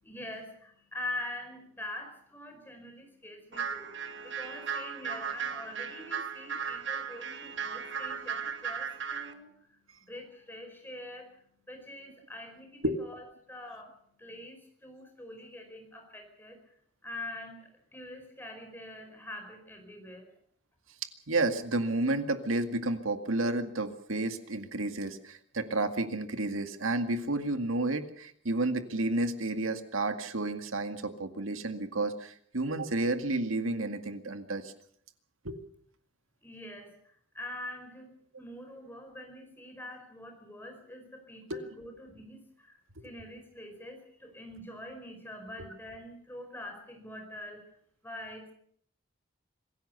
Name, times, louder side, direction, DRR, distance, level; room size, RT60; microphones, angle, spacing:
voice 1, 0.0-9.5 10.1-11.3 11.7-13.2 13.5-16.6 17.0-20.3 36.4-37.0 37.3-42.8 43.0-47.7 48.0-48.5, left 1 dB, 10° left, 4 dB, 5.0 m, -44 dB
sound 1, 3.5-9.3, right 6 dB, 60° right, 1.7 m, -36 dB
voice 2, 21.3-34.7 35.4-35.6 41.5-41.6 43.0-43.1, right 2 dB, 90° right, 8 dB, 2.1 m, -31 dB
25.5 x 16.5 x 6.8 m, 0.62 s
head